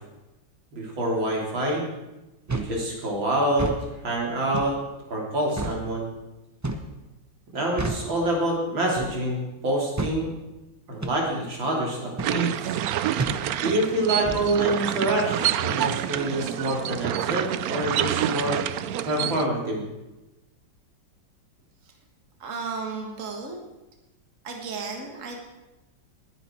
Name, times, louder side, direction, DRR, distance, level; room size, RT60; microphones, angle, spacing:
voice 1, 0.7-1.8 2.5-3.7 4.0-4.8 5.1-6.1 7.5-10.3 10.9-12.8 13.6-18.6 19.0-19.8, right 1 dB, 90° right, -2 dB, 3.9 m, -26 dB
sound 1, 2.5-2.8 3.5-3.8 4.5-4.8 5.6-5.8 6.6-6.9 7.8-8.1 9.0-9.2 10.0-10.2 11.0-11.2 12.2-12.4 13.2-13.4 14.2-14.5, right 2 dB, 20° right, 0.5 m, -30 dB
sound 2, 12.2-19.5, right 11 dB, 70° right, 0.9 m, -27 dB
voice 2, 22.4-23.6 24.4-25.4, right 4 dB, 45° right, 2 dB, 2.0 m, -34 dB
19.5 x 10.0 x 4.5 m, 1.0 s
omnidirectional pair, 2.0 m